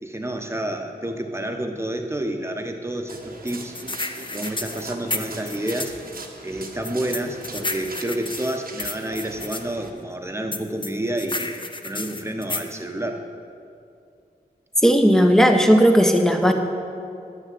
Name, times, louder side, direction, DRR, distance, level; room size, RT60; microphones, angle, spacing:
voice 1, 0.0-3.8 4.3-6.0 6.4-11.6 11.8-13.2, right 1 dB, 15° right, 4 dB, 1.2 m, -29 dB
sound 1, 3.1-9.9, right 2 dB, 65° right, 1.2 m, -40 dB
sound 2, 3.5-6.0 6.8-9.6 10.5-12.7, left 2 dB, 30° left, 0.7 m, -31 dB
voice 2, 14.8-16.5, equal, 5° left, 5 dB, 1.1 m, -15 dB
10.0 x 6.4 x 7.7 m, 2.5 s
cardioid pair, 45°, 16 cm